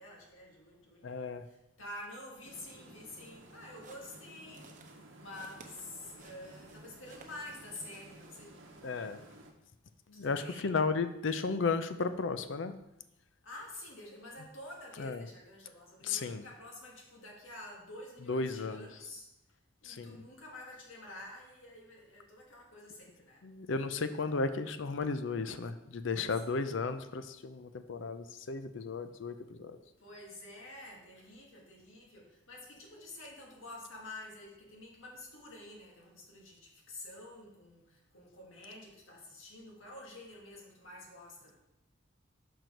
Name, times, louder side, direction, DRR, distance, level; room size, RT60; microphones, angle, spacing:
voice 1, 0.0-1.2 1.4-4.7 5.2-8.5 9.0-9.1 10.1-10.7 13.4-19.3 19.8-23.5 26.2-26.3 30.0-41.6, left 1 dB, 90° left, -2 dB, 1.8 m, -49 dB
voice 2, 1.0-1.5 8.8-9.2 10.1-12.7 15.0-15.3 16.0-16.4 18.2-18.9 19.8-20.2 23.4-29.8, left 4 dB, 70° left, 10 dB, 0.5 m, -34 dB
sound 1, 2.4-9.5, right 1 dB, 75° right, 0.9 m, -55 dB
sound 2, 3.4-7.6 7.9-8.3, right 4 dB, 40° right, 0.7 m, -58 dB
6.1 x 4.7 x 5.2 m, 0.89 s
head